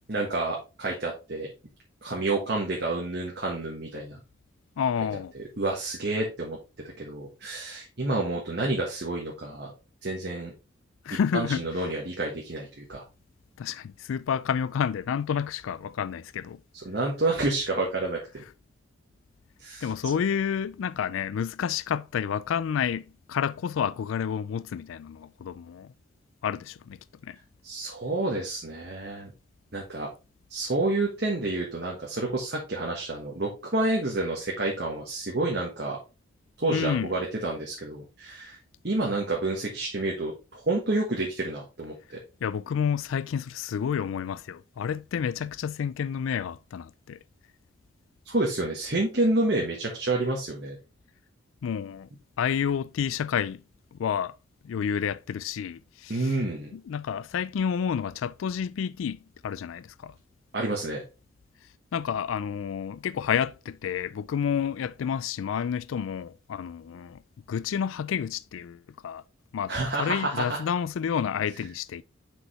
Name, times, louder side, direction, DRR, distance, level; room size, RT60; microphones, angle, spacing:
voice 1, 0.1-1.5 2.0-4.2 5.3-6.6 7.0-9.7 10.0-10.5 11.3-13.0 16.7-18.4 19.6-19.9 27.6-29.3 29.7-30.1 30.5-36.0 36.6-38.6 38.8-42.2 48.2-50.8 56.1-56.7 60.5-61.0 69.7-70.6, right 2 dB, 55° right, 1.4 m, -29 dB
voice 2, 4.8-5.3 11.0-11.6 13.6-16.6 19.8-25.9 26.4-27.0 27.2-27.4 36.7-37.1 42.4-47.2 51.6-52.1 52.4-53.6 53.9-54.3 54.6-56.3 56.7-60.1 61.9-67.2 67.5-69.2 69.5-72.0, left 7 dB, 90° left, 0.3 m, -30 dB
6.2 x 5.2 x 3.2 m
head